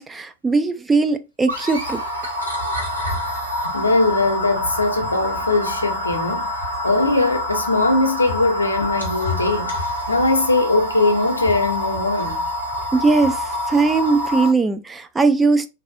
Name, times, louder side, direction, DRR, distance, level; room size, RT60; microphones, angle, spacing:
voice 1, 0.0-2.0 12.9-15.7, right 3 dB, 10° right, 0.4 m, -19 dB
sound 1, 1.5-14.5, left 1 dB, 90° right, 1.2 m, -26 dB
voice 2, 3.7-6.6 6.8-12.5, left 2 dB, 80° left, 0.7 m, -20 dB
3.8 x 2.6 x 2.5 m
figure-of-eight pair, 95°, 0 cm